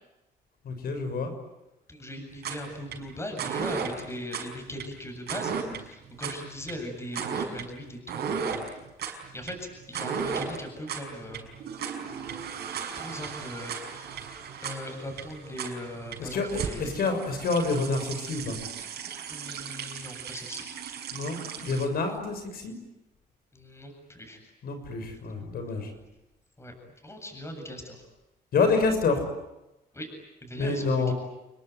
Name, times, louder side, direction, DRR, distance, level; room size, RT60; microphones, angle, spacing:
voice 1, 0.6-1.3 16.2-18.6 21.1-22.7 24.6-25.9 28.5-29.2 30.6-31.1, left 4 dB, 65° left, 7 dB, 6.6 m, -27 dB
voice 2, 1.9-8.6 9.1-11.5 13.0-14.3 14.6-16.9 19.3-20.6 23.5-24.4 26.6-26.7 27.0-28.0 29.9-30.1 30.4-31.1, left 1 dB, 15° left, 4 dB, 7.9 m, -39 dB
sound 1, 2.3-21.9, right 6 dB, 75° right, 5.7 m, -35 dB
29.0 x 21.5 x 9.4 m, 0.95 s
cardioid pair, 100°, 17 cm